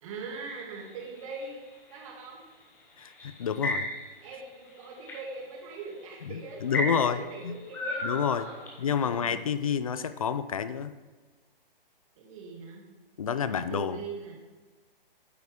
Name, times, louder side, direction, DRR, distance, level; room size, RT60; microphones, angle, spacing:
voice 1, 0.0-1.6 1.9-2.4 4.2-8.7 9.0-9.4 12.2-12.8 13.4-14.4, right 4 dB, 35° right, -2 dB, 2.5 m, -41 dB
sound 1, 0.7-2.0 3.0-4.2 4.7-5.2 5.9-6.0 6.7-8.9, left 1 dB, 5° left, 0.8 m, -33 dB
voice 2, 3.0-3.9 6.2-7.5 8.0-8.5 8.8-10.9 13.2-14.0, left 7 dB, 40° left, 12 dB, 0.4 m, -29 dB
9.5 x 8.1 x 3.6 m, 1.3 s
hypercardioid pair, 160°, 29 cm